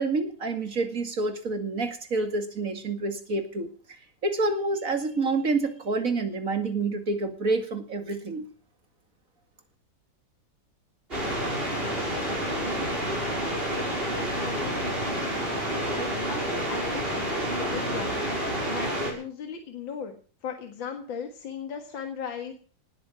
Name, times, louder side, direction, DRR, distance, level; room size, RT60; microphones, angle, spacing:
voice 1, 0.0-3.7 4.2-8.5, right 3 dB, 45° right, 7 dB, 2.5 m, -28 dB
sound 1, 11.1-19.1, right 1 dB, 30° right, 6.5 m, -29 dB
voice 2, 11.6-12.8 13.7-20.1 20.4-22.5, left 6 dB, 80° left, 4 dB, 2.5 m, -38 dB
19.0 x 8.9 x 7.6 m, 0.41 s
omnidirectional pair, 2.0 m